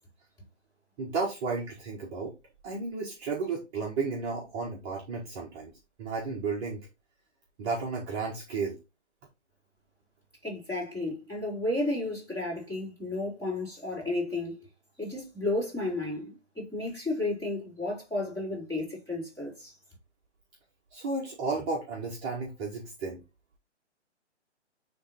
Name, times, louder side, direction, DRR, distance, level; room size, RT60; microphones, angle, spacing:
voice 1, 1.0-2.3 2.6-5.7 6.0-6.8 7.6-8.8 20.9-23.2, right 4 dB, 25° right, 1.5 m, -33 dB
voice 2, 10.4-14.6 15.0-19.7, left 2 dB, 10° left, 3.9 m, -32 dB
9.8 x 3.5 x 4.3 m
figure-of-eight pair, 135°, 36 cm